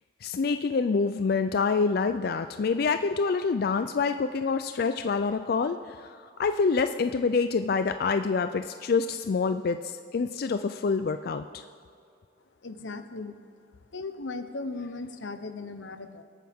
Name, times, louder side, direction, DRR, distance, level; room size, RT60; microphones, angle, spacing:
voice 1, 0.2-6.1 6.4-11.6, left 4 dB, 55° left, 9 dB, 0.4 m, -26 dB
voice 2, 12.6-13.4 13.9-16.2, left 3 dB, 90° left, 9 dB, 0.9 m, -37 dB
22.0 x 9.1 x 3.6 m, 2.4 s
head